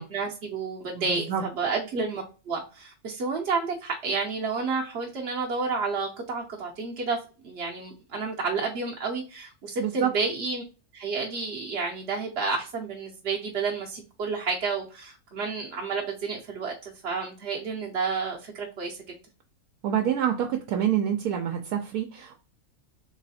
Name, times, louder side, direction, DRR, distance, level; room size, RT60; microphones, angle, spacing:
voice 1, 0.0-7.2 7.4-10.6 10.9-19.0, right 4 dB, 55° right, -2 dB, 0.8 m, -30 dB
voice 2, 1.0-1.4 9.8-10.1 19.8-22.4, right 9 dB, 75° right, 3 dB, 1.0 m, -27 dB
3.2 x 3.0 x 4.1 m, 0.34 s
omnidirectional pair, 1.6 m